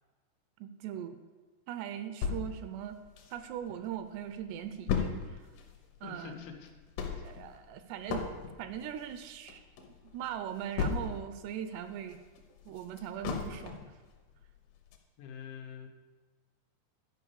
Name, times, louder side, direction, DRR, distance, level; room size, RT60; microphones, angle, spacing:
voice 1, 0.6-1.2 1.7-3.0 3.3-5.4 6.0-6.4 7.1-8.2 8.6-12.2 12.7-13.8, right 10 dB, 85° right, 9 dB, 2.6 m, -40 dB
sound 1, 2.2-3.8 4.1-4.2 4.4-11.4 11.8-14.0 14.4-14.5 14.9-15.0, left 6 dB, 75° left, 2.6 m, -36 dB
voice 2, 6.0-6.7 7.0-7.2 15.2-15.9, left 7 dB, 90° left, 3 dB, 3.3 m, -45 dB
11.0 x 5.4 x 6.9 m, 1.3 s
omnidirectional pair, 5.0 m